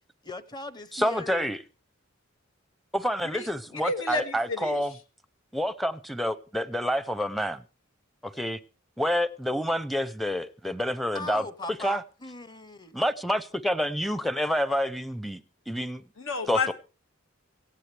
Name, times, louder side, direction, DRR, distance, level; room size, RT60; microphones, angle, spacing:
voice 1, 0.2-1.5 11.1-13.0, left 3 dB, 20° left, 0.9 m, -39 dB
voice 2, 0.9-1.6 2.9-4.9 5.5-7.6 8.2-8.6 9.0-11.4 11.8-12.0 12.9-16.0 16.5-16.7, equal, ahead, 0.6 m, -28 dB
voice 3, 3.3-4.9 16.2-16.7, left 4 dB, 85° left, 1.9 m, -31 dB
18.5 x 15.5 x 3.3 m
head